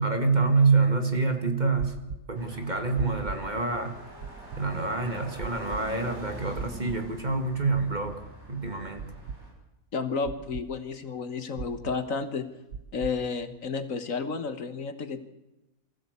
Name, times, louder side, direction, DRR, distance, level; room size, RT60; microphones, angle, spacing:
voice 1, 0.0-1.9 2.3-3.9 4.6-8.2 8.5-9.1, right 4 dB, 30° right, 6 dB, 2.2 m, -26 dB
sound 1, 1.8-2.2 3.0-3.4 4.2-4.6 5.4-5.8 6.5-7.0 7.7-8.1 9.0-9.4 10.2-10.6 11.6-12.0 12.7-13.1, right 5 dB, 65° right, 1.4 m, -36 dB
sound 2, 2.3-9.5, equal, 50° right, 7.3 m, -44 dB
voice 2, 9.9-12.5 12.9-15.2, left 4 dB, 65° left, 10 dB, 1.7 m, -31 dB
24.5 x 15.0 x 8.2 m, 0.97 s
omnidirectional pair, 1.5 m